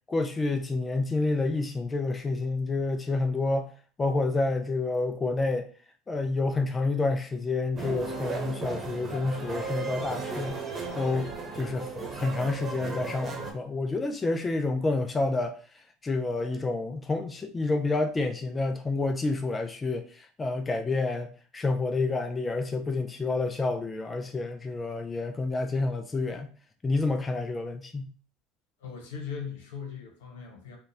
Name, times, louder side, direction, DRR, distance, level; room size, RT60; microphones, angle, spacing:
voice 1, 0.1-3.7 4.0-5.7 6.1-10.6 10.9-11.9 12.1-15.6 16.0-26.5 26.8-28.1, left 3 dB, 20° left, 0.4 m, -29 dB
sound 1, 7.8-13.5, right 4 dB, 35° right, 1.0 m, -35 dB
voice 2, 28.8-30.8, left 6 dB, 85° left, 1.1 m, -39 dB
3.5 x 2.3 x 2.7 m
hypercardioid pair, 85°, 0 cm